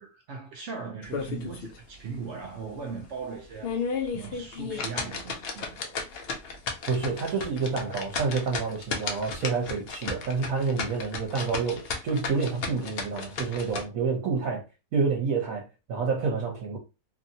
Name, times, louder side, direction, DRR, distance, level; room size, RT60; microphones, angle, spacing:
voice 1, 0.0-3.7 4.1-6.1, right 5 dB, 90° right, 0.6 m, -39 dB
sound 1, 1.0-1.8 2.1-2.2 2.7-2.8 3.4-13.8, left 5 dB, 85° left, 0.5 m, -34 dB
voice 2, 6.9-14.6 14.9-16.8, right 5 dB, 60° right, 1.1 m, -28 dB
2.9 x 2.7 x 2.6 m
omnidirectional pair, 1.8 m